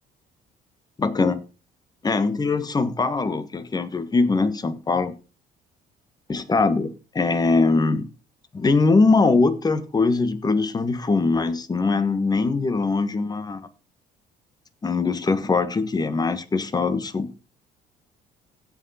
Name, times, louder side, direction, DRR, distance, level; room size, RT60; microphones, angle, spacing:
voice 1, 1.0-1.4 2.0-5.1 6.3-8.1 8.5-13.6 14.8-17.3, left 3 dB, 25° left, 1.3 m, -22 dB
16.0 x 5.6 x 4.2 m
cardioid pair, 110°, 17 cm